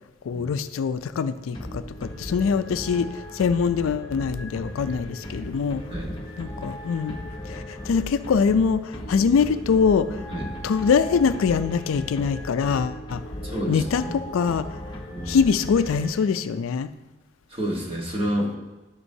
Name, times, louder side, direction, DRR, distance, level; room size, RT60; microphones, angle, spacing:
voice 1, 0.2-5.8 6.4-10.2 10.6-13.2 13.7-14.0 14.3-14.8 15.3-16.9, left 6 dB, 90° left, 12 dB, 0.4 m, -23 dB
sound 1, 1.5-16.6, left 1 dB, 20° left, 0.9 m, -37 dB
voice 2, 13.4-14.1 15.1-15.4 17.5-18.6, equal, 30° right, -1 dB, 1.3 m, -29 dB
11.0 x 5.2 x 2.7 m, 1.1 s
head